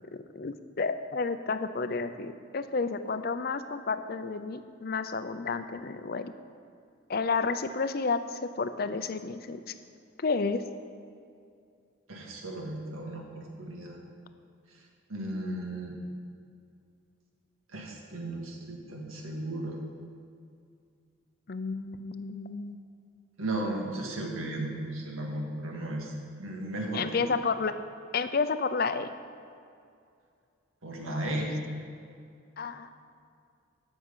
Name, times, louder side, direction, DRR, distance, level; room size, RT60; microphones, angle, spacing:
voice 1, 0.1-6.3 7.1-9.7 10.2-10.6 21.5-22.8 26.9-27.7 28.1-29.1 32.6-32.9, left 4 dB, 45° left, 11 dB, 0.5 m, -31 dB
voice 2, 12.1-14.0 14.7-14.8 15.1-16.0 17.7-19.8 23.4-27.2 30.8-31.6, right 1 dB, 90° right, 0 dB, 1.9 m, -35 dB
15.5 x 6.2 x 5.5 m, 2.4 s
head